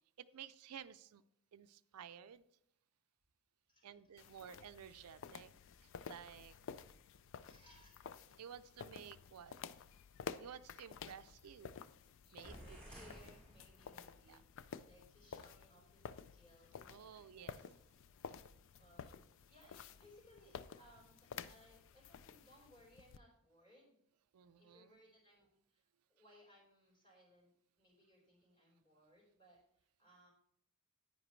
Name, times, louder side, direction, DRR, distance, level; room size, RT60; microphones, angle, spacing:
voice 1, 0.2-1.2 1.5-2.5 3.8-5.5 5.8-6.5 8.4-9.6 10.4-11.7 12.3-12.8 14.3-14.4 16.9-17.6 24.3-25.0, right 8 dB, 90° right, 12 dB, 0.4 m, -54 dB
voice 2, 3.7-4.4 7.2-8.4 12.2-17.6 18.4-19.2 19.5-24.0 24.6-25.8 26.1-30.3, equal, 25° left, -2 dB, 4.5 m, -66 dB
sound 1, 4.2-23.2, left 6 dB, 60° left, 0.4 m, -52 dB
sound 2, 12.4-14.3, equal, 5° left, 2.3 m, -55 dB
9.9 x 9.1 x 3.2 m, 0.71 s
head